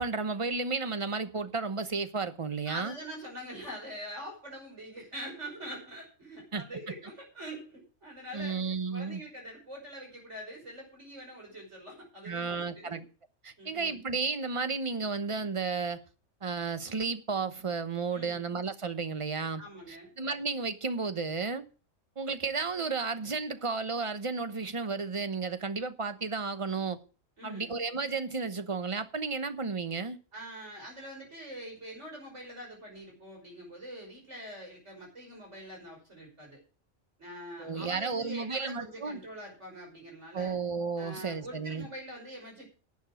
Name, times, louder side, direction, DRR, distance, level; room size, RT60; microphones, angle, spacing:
voice 1, 0.0-2.9 6.5-6.6 8.3-9.2 12.2-13.1 13.4-16.0 16.4-19.6 19.9-21.7 22.2-27.0 27.4-30.2 37.6-39.2 40.3-41.9, right 4 dB, 30° right, 0.9 m, -33 dB
voice 2, 2.7-13.0 13.6-14.0 18.1-18.4 19.6-20.1 27.4-27.8 30.3-36.6 37.2-40.6 41.0-42.7, equal, 60° right, 5.9 m, -44 dB
11.5 x 8.3 x 6.3 m
omnidirectional pair, 1.3 m